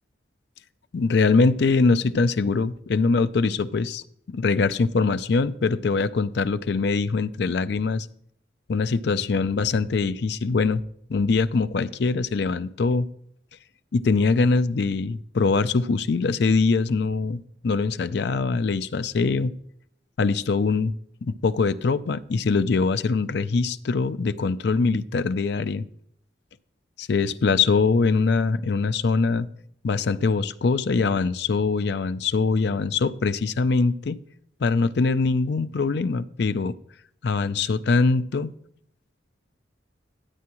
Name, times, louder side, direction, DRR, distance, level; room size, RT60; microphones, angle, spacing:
voice 1, 0.9-4.0 4.3-8.1 8.7-10.8 11.1-13.1 13.9-19.5 20.2-20.9 21.2-25.8 27.0-29.5 29.8-34.2 34.6-36.8 37.2-38.5, left 4 dB, 55° left, 12 dB, 0.4 m, -23 dB
13.0 x 8.5 x 3.0 m, 0.68 s
head